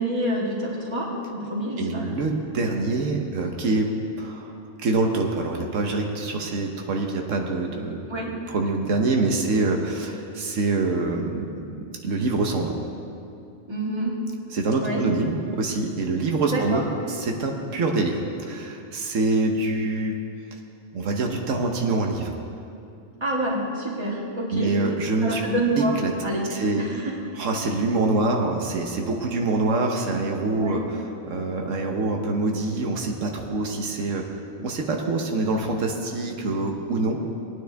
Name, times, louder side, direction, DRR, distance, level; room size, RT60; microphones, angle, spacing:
voice 1, 0.0-2.1 8.1-8.3 13.7-14.1 14.8-15.1 16.5-16.8 23.2-24.7 25.2-26.0 26.2-27.2 30.6-30.8, right 1 dB, 20° right, -4 dB, 1.9 m, -27 dB
voice 2, 1.8-8.0 8.3-12.8 14.5-20.2 20.5-20.6 20.9-22.5 24.5-25.4 25.8-26.1 26.5-26.8 27.4-31.0 31.2-34.3 34.6-37.2, right 3 dB, 90° right, 2 dB, 1.4 m, -25 dB
19.5 x 9.3 x 3.4 m, 2.6 s
omnidirectional pair, 1.3 m